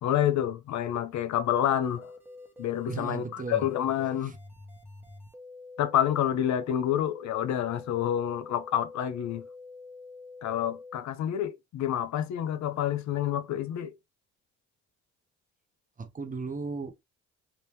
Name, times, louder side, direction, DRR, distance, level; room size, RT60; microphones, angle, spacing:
voice 1, 0.0-2.1 2.6-4.3 5.8-9.5 10.4-13.9, left 10 dB, 65° left, 0.6 m, -28 dB
sound 1, 1.6-11.0, left 3 dB, 5° right, 1.1 m, -47 dB
voice 2, 2.9-3.7 4.2-4.3 16.0-16.9, right 4 dB, 25° right, 0.6 m, -36 dB
2.9 x 2.7 x 3.3 m
cardioid pair, 90°, 30 cm